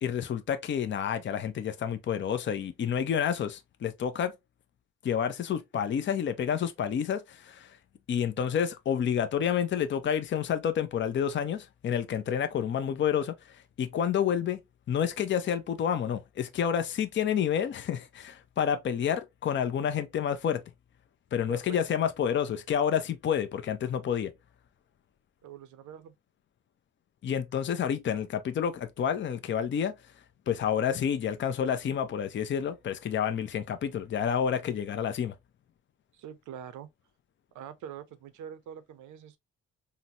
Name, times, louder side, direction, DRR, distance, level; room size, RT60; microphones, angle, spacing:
voice 1, 0.0-4.4 5.0-7.8 8.1-14.6 14.9-20.6 21.3-24.3 27.2-29.9 30.5-35.3, left 8 dB, 40° left, 0.5 m, -29 dB
voice 2, 21.4-21.8 25.4-26.1 36.1-36.9 37.5-39.4, right 9 dB, 75° right, 0.6 m, -44 dB
3.9 x 2.1 x 2.7 m
cardioid pair, 90°, 30 cm